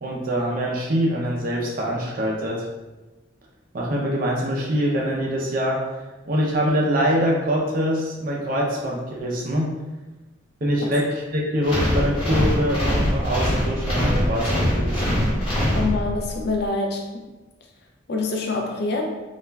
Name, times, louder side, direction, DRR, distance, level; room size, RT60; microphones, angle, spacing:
voice 1, 0.0-2.7 3.7-6.0 6.2-9.8 10.6-15.2, equal, 45° right, -2 dB, 0.5 m, -24 dB
sound 1, 11.6-16.4, equal, 30° left, 0.9 m, -23 dB
voice 2, 15.7-17.3 18.1-19.0, left 3 dB, 55° left, 2 dB, 0.4 m, -25 dB
2.3 x 2.2 x 3.1 m, 1.1 s
head